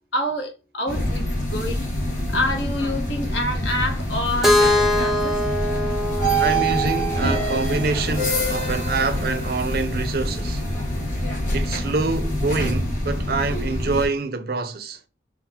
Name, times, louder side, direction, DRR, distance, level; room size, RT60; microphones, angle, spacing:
voice 1, 0.1-5.4, left 1 dB, 80° left, 1.1 m, -28 dB
sound 1, 0.9-14.1, equal, 45° left, 1.6 m, -25 dB
Keyboard (musical), 4.4-8.3, left 1 dB, ahead, 0.5 m, -23 dB
voice 2, 6.4-10.6 11.5-15.0, right 3 dB, 55° right, 0.5 m, -26 dB
5.8 x 2.0 x 2.8 m
head